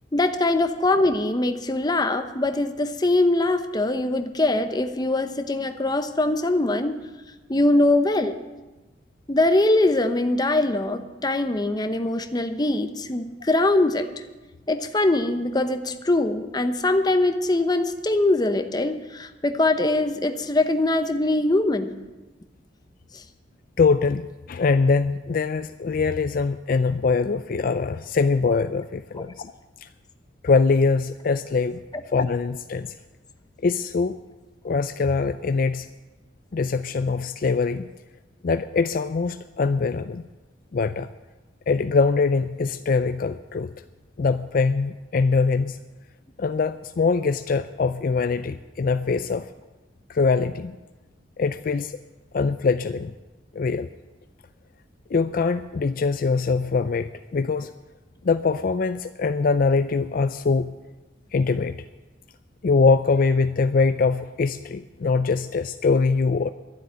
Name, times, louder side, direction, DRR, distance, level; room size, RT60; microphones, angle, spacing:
voice 1, 0.1-7.0 7.5-8.4 9.3-14.1 14.7-21.9, left 2 dB, 20° left, 8 dB, 0.8 m, -22 dB
voice 2, 23.8-24.2 24.5-29.5 29.8-29.9 30.4-31.8 32.1-32.9 33.6-34.2 34.6-35.9 36.5-37.9 38.4-40.2 40.7-41.1 41.7-43.7 44.2-45.8 46.4-49.5 50.1-50.7 51.4-52.0 52.3-53.1 53.5-53.9 55.1-57.7 58.2-60.7 61.3-61.8 62.6-66.5, left 4 dB, 50° left, 11 dB, 0.4 m, -23 dB
12.0 x 7.8 x 9.9 m, 1.2 s
head